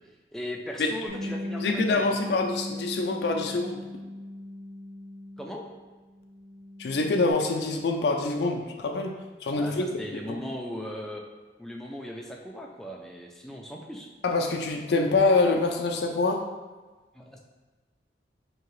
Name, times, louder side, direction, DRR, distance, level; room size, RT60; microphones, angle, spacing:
voice 1, 0.3-2.4 5.4-5.7 9.6-11.2 11.6-14.1 17.1-17.4, equal, ahead, -1 dB, 0.3 m, -38 dB
Bass guitar, 1.1-5.8 6.1-7.3, left 1 dB, 70° right, 0.6 m, -38 dB
voice 2, 1.3-3.8 6.8-9.8 10.3-10.4 14.2-16.4, left 3 dB, 70° left, 3 dB, 0.4 m, -25 dB
4.6 x 2.8 x 3.1 m, 1.3 s
head